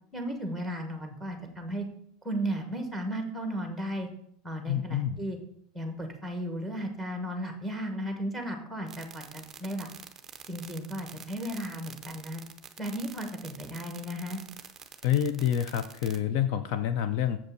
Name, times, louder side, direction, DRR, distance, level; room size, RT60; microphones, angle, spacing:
voice 1, 0.1-1.9 2.2-4.1 4.4-5.4 5.7-9.9 10.5-12.4 12.8-14.4, equal, ahead, 4 dB, 1.1 m, -35 dB
voice 2, 4.7-5.2 15.0-17.4, left 10 dB, 45° left, 11 dB, 0.4 m, -27 dB
sound 1, 8.9-16.2, right 7 dB, 15° right, 0.6 m, -46 dB
7.2 x 5.3 x 6.6 m, 0.68 s
supercardioid pair, 180°, 2 cm